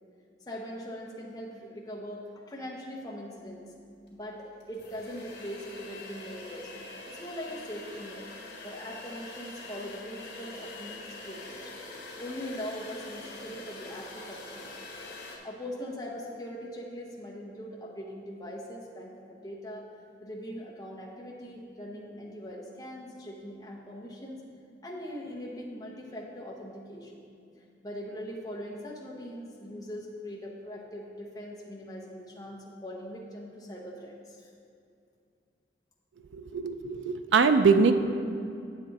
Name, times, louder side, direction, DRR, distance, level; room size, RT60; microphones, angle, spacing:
voice 1, 0.5-3.7 4.1-8.3 8.6-11.7 12.2-14.7 15.4-19.9 20.2-24.4 24.8-27.3 27.8-34.5, equal, 20° left, -3 dB, 0.9 m, -41 dB
sound 1, 4.1-4.2 4.6-15.4, left 2 dB, 75° left, 2.0 m, -44 dB
voice 2, 36.3-37.9, right 5 dB, 85° right, 8 dB, 0.4 m, -23 dB
8.9 x 8.0 x 4.1 m, 2.5 s
head